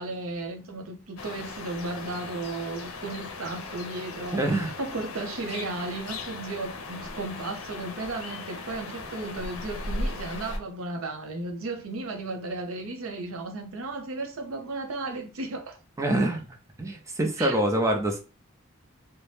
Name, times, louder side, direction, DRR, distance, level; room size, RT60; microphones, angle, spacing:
voice 1, 0.0-4.4 4.8-15.8 17.4-17.6, right 2 dB, 80° right, 0.6 m, -34 dB
sound 1, 1.2-10.6, left 2 dB, 85° left, 0.6 m, -37 dB
voice 2, 4.3-4.7 16.0-16.5 16.8-18.2, right 1 dB, 15° right, 0.5 m, -25 dB
2.7 x 2.1 x 3.2 m
head